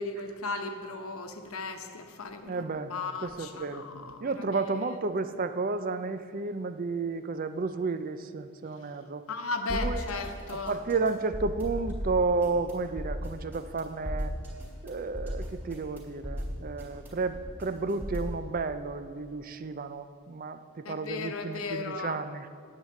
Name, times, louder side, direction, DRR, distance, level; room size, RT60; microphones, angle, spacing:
voice 1, 0.0-2.6 2.9-4.4 9.3-10.8 20.8-22.2, left 3 dB, 75° left, 6 dB, 1.1 m, -36 dB
voice 2, 2.5-2.9 3.2-3.9 4.2-9.3 9.7-10.2 10.5-14.3 14.8-22.5, right 3 dB, 40° right, 11 dB, 0.5 m, -32 dB
sound 1, 9.7-18.4, equal, 10° right, 3.0 m, -36 dB
10.5 x 8.1 x 7.5 m, 2.2 s
head